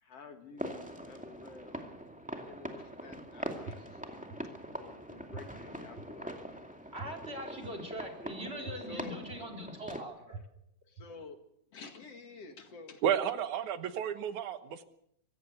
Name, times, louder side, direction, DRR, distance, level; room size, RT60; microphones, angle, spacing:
voice 1, 0.0-2.0 2.4-4.5 4.8-6.3 8.9-9.2 10.9-11.4 11.7-13.0, left 4 dB, 60° left, 6 dB, 2.9 m, -50 dB
sound 1, 0.6-10.0, equal, 5° right, 1.8 m, -43 dB
sound 2, 3.7-3.8 4.3-4.4 5.3-5.4 6.0-6.1 7.0-7.1 7.6-7.7 8.7-8.8 9.3-9.4 10.3-10.4 11.0-11.1, right 4 dB, 60° right, 2.3 m, -42 dB
voice 2, 6.9-10.4, equal, 20° right, 2 dB, 4.2 m, -42 dB
voice 3, 13.0-14.8, right 9 dB, 85° right, 10 dB, 2.7 m, -32 dB
24.5 x 16.5 x 6.8 m, 0.71 s
omnidirectional pair, 3.3 m